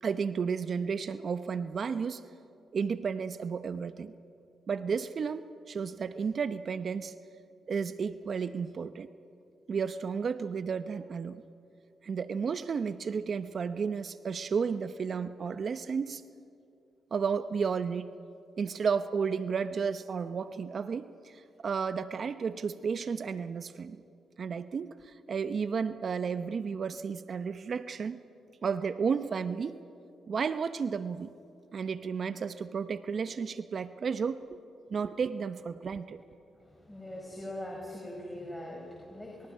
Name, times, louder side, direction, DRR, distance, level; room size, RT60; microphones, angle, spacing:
voice 1, 0.0-2.2 2.7-4.1 4.7-7.1 7.7-9.1 9.7-11.4 12.0-16.2 17.1-18.1 18.6-24.0 24.4-28.2 28.6-29.8 30.3-31.3 31.7-34.6 34.9-36.2, right 6 dB, 55° right, 12 dB, 0.8 m, -32 dB
voice 2, 36.6-39.5, left 1 dB, 10° left, -1 dB, 5.3 m, -42 dB
29.5 x 27.5 x 5.6 m, 2.6 s
supercardioid pair, 55°, 0 cm